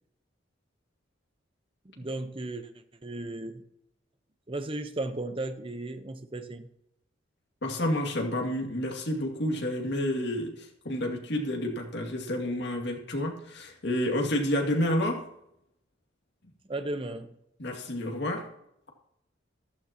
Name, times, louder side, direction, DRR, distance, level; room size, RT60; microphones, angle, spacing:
voice 1, 2.0-2.7 3.0-3.6 4.5-6.7 16.7-17.3, right 2 dB, 30° right, 0.9 m, -35 dB
voice 2, 7.6-15.2 17.6-18.5, left 1 dB, 65° left, 2.4 m, -29 dB
14.5 x 12.5 x 2.9 m
head